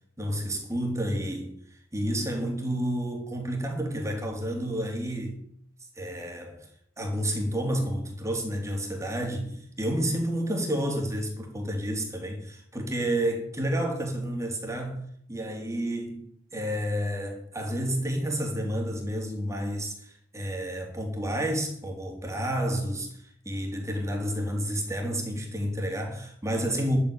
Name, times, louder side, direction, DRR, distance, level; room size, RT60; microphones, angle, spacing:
voice 1, 0.2-1.5 1.9-5.4 6.0-6.7 7.0-15.0 15.3-27.0, equal, 15° right, 3.6 m, -30 dB
11.5 x 8.8 x 9.1 m
head